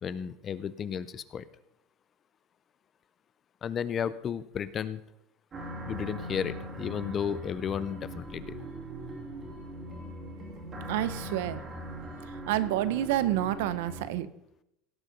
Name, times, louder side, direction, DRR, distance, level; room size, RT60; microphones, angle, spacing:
voice 1, 0.0-1.4 3.6-5.0 5.9-8.6, left 8 dB, 25° left, 16 dB, 0.4 m, -33 dB
sound 1, 5.5-14.1, equal, 25° right, 2.4 m, -40 dB
voice 2, 10.9-11.7 12.2-14.3, right 13 dB, 70° right, 14 dB, 0.8 m, -29 dB
17.0 x 6.6 x 5.3 m, 0.79 s
supercardioid pair, 170°, 0 cm